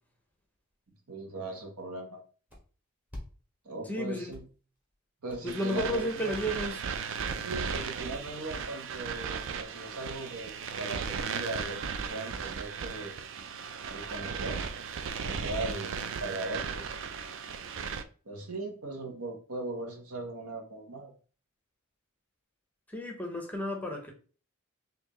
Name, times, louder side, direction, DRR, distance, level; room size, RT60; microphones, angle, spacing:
voice 1, 1.1-2.2 3.6-4.4 5.2-6.4 7.4-11.8 12.1-13.1 13.9-14.6 15.2-16.9 18.2-21.1, right 2 dB, 90° right, 1.1 m, -39 dB
sound 1, 2.5-2.6 3.1-3.3 3.6-3.9 4.1-5.0 5.3-5.6 6.0-6.5 6.8-6.9 7.1-7.2 7.5-8.1, left 1 dB, 10° right, 1.4 m, -45 dB
voice 2, 3.9-4.3 5.4-6.8 22.9-24.1, equal, 10° left, 0.8 m, -32 dB
sound 2, 5.5-18.0, right 6 dB, 60° right, 0.4 m, -36 dB
4.4 x 2.7 x 3.0 m
head